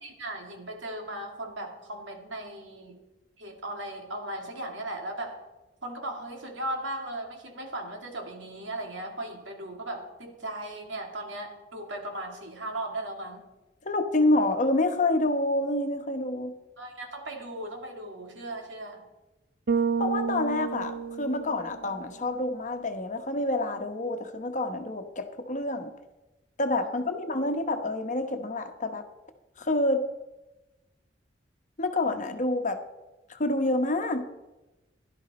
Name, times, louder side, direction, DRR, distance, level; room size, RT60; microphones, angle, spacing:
voice 1, 0.0-3.0 3.4-5.4 5.8-13.5 16.8-19.0 26.8-27.1, right 1 dB, 80° right, 3 dB, 2.5 m, -37 dB
voice 2, 13.8-16.5 20.0-25.9 26.6-29.0 29.6-30.1 31.8-32.8 33.3-34.3, left 2 dB, 40° left, 7 dB, 1.1 m, -27 dB
Bass guitar, 19.7-22.0, right 5 dB, 55° right, 0.5 m, -30 dB
16.0 x 11.5 x 4.3 m, 1.0 s
head